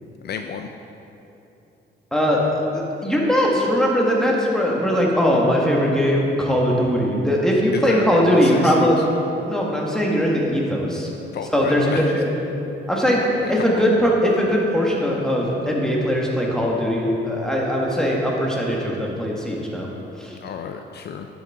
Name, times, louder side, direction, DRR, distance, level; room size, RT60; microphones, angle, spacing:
voice 1, 0.2-0.7 7.7-8.9 11.3-12.0 13.2-13.9 20.4-21.3, left 7 dB, 55° left, 6 dB, 0.5 m, -31 dB
voice 2, 2.7-9.0 9.5-11.1 11.5-12.3 12.9-13.2 13.5-19.9 20.2-20.3, equal, 5° left, -3 dB, 1.7 m, -20 dB
10.0 x 7.1 x 3.7 m, 2.9 s
cardioid pair, 90°, 20 cm